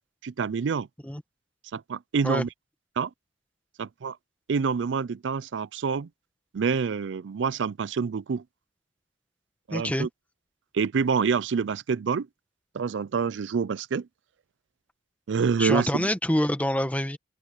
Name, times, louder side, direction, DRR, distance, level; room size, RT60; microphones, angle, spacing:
voice 1, 0.2-0.9 1.7-2.5 3.0-3.1 3.8-4.2 4.5-6.1 6.5-8.4 9.7-10.1 10.7-12.3 12.7-14.1 15.3-16.1, right 5 dB, 75° right, 0.4 m, -27 dB
voice 2, 9.7-10.1 15.6-17.2, left 1 dB, 10° left, 1.5 m, -26 dB
open air
head